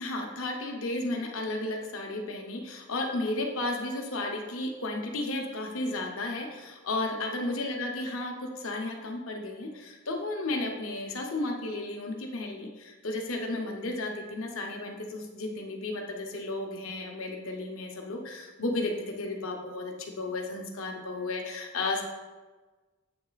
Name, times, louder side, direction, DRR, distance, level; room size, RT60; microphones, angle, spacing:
voice 1, 0.0-22.0, left 2 dB, 80° left, 2 dB, 0.9 m, -33 dB
7.8 x 3.2 x 4.0 m, 1.3 s
head